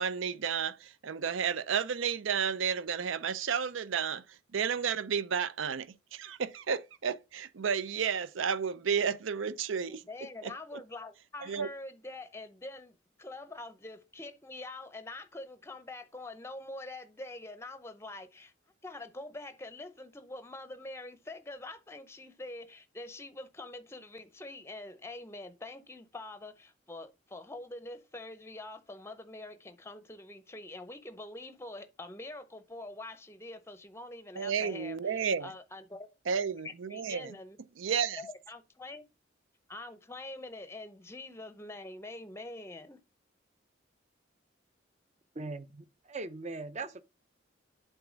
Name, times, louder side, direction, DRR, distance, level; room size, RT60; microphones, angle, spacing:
voice 1, 0.0-4.2 4.5-10.0 10.4-10.5 11.4-11.7 34.4-35.5 36.3-37.4 37.8-38.2, right 6 dB, 80° right, 0.5 m, -32 dB
voice 2, 9.9-18.5 18.8-36.1 36.6-37.6 38.1-39.1 39.7-43.0, left 2 dB, 15° left, 0.6 m, -45 dB
voice 3, 45.3-47.0, right 3 dB, 35° right, 0.7 m, -40 dB
8.1 x 3.5 x 5.1 m
head